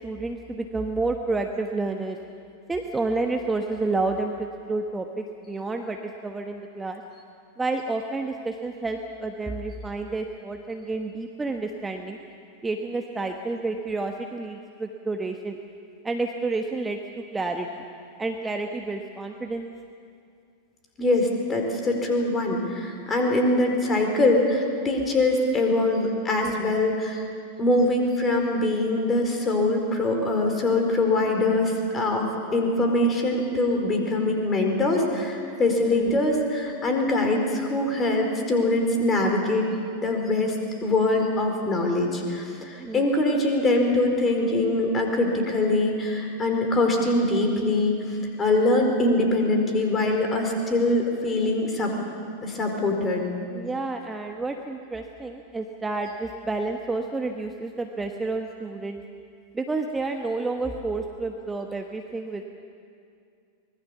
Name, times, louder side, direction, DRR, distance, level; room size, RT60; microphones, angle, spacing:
voice 1, 0.0-2.2 2.7-7.0 7.6-12.2 12.6-15.6 16.0-17.0 17.3-17.8 18.2-19.7 26.4-26.8 35.9-36.3 42.8-43.1 53.5-59.0 59.5-62.4, right 3 dB, 10° right, 4 dB, 1.2 m, -30 dB
voice 2, 21.0-27.2 27.6-39.7 40.0-40.6 40.8-48.0 48.4-51.9 52.4-53.2, left 2 dB, 20° left, 3 dB, 4.5 m, -23 dB
24.5 x 20.5 x 7.1 m, 2.4 s
figure-of-eight pair, 90°, 0 cm